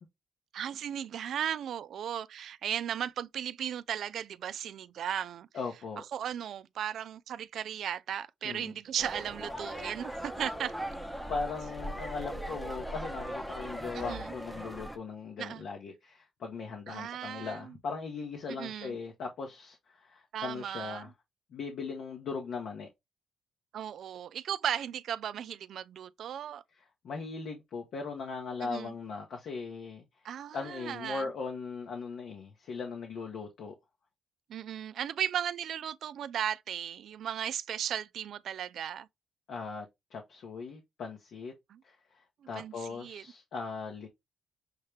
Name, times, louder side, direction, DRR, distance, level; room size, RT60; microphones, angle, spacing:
voice 1, 0.5-5.5 6.1-10.7 13.9-14.3 15.4-15.6 16.9-17.8 18.6-19.0 20.3-21.1 23.7-26.6 28.6-28.9 30.2-31.3 34.5-39.1 41.7-41.8 42.5-43.2, right 9 dB, 70° right, 0.3 m, -36 dB
voice 2, 5.5-6.0 8.4-8.7 11.3-21.1 21.5-22.9 27.0-30.0 30.5-33.7 39.5-41.5 41.8-42.2 42.5-44.1, left 4 dB, 70° left, 1.0 m, -39 dB
sound 1, 9.0-15.0, right 1 dB, 5° left, 0.8 m, -39 dB
6.4 x 2.1 x 3.2 m
cardioid pair, 90°, 0 cm